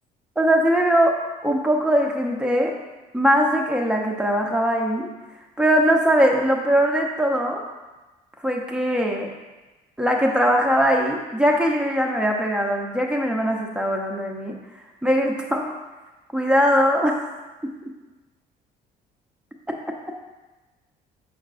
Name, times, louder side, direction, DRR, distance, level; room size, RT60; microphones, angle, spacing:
voice 1, 0.4-2.7 3.1-5.1 5.6-7.6 8.4-9.3 10.0-14.5 15.0-15.7 16.3-17.2, equal, 5° right, 0 dB, 0.8 m, -21 dB
6.4 x 5.9 x 2.5 m, 1.2 s
cardioid pair, 110°, 17 cm